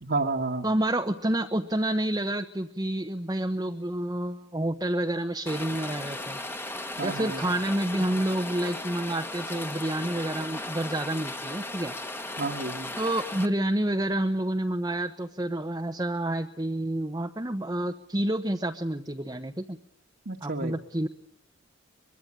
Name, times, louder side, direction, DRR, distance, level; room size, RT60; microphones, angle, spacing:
voice 1, 0.0-0.7 7.0-7.4 12.4-12.9 20.3-20.7, right 3 dB, 55° right, -1 dB, 1.8 m, -30 dB
voice 2, 0.6-6.4 7.0-11.9 13.0-19.8 20.4-21.1, right 1 dB, 20° right, 4 dB, 1.0 m, -29 dB
Rain, 5.5-13.5, left 2 dB, 10° left, 1.6 m, -36 dB
24.0 x 22.0 x 8.7 m, 0.69 s
head